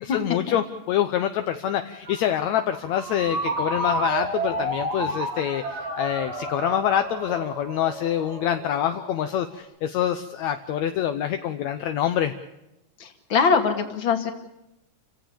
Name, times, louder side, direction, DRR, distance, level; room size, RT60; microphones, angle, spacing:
voice 1, 0.0-12.3, left 10 dB, 70° left, 7 dB, 2.1 m, -26 dB
Ringtone, 2.1-9.5, right 2 dB, 55° right, 6.8 m, -31 dB
voice 2, 13.0-14.3, left 5 dB, 45° left, 6 dB, 2.7 m, -22 dB
29.5 x 16.5 x 7.0 m, 0.89 s
omnidirectional pair, 3.5 m